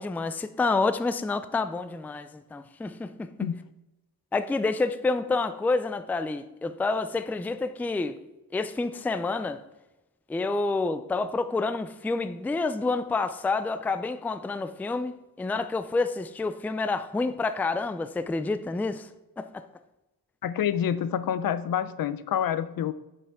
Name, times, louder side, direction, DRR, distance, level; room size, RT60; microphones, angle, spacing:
voice 1, 0.0-3.5 4.3-8.2 8.5-9.6 10.3-19.1 19.4-19.6, left 3 dB, 5° left, 11 dB, 0.3 m, -28 dB
voice 2, 20.4-22.9, left 9 dB, 70° left, 15 dB, 0.6 m, -27 dB
9.1 x 6.7 x 3.5 m, 1.0 s
wide cardioid pair, 130°, 36 cm